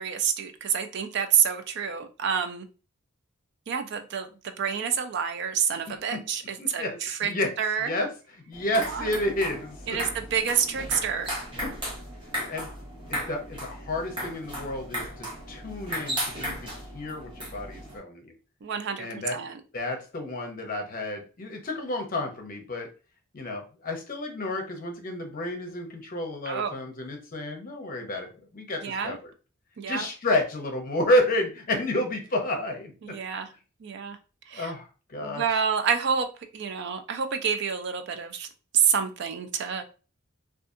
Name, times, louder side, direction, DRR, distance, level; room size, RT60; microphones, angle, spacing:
voice 1, 0.0-2.7 3.7-7.3 7.6-7.9 8.9-9.1 9.9-11.3 18.6-19.6 26.5-26.8 28.8-29.2 29.8-30.1 33.0-33.5 33.8-34.2 34.5-34.7 35.2-36.3 36.5-38.5 38.7-39.8, right 7 dB, 55° right, 8 dB, 0.4 m, -28 dB
voice 2, 5.9-6.2 6.6-7.5 7.8-8.1 8.5-10.0 11.6-11.8 12.5-12.7 13.1-18.3 19.0-19.4 19.7-22.9 23.3-29.3 29.9-32.9 34.5-35.4, left 1 dB, 40° left, 3 dB, 0.6 m, -30 dB
sound 1, 8.5-18.0, equal, 25° right, 0.9 m, -36 dB
2.6 x 2.4 x 2.4 m, 0.34 s
head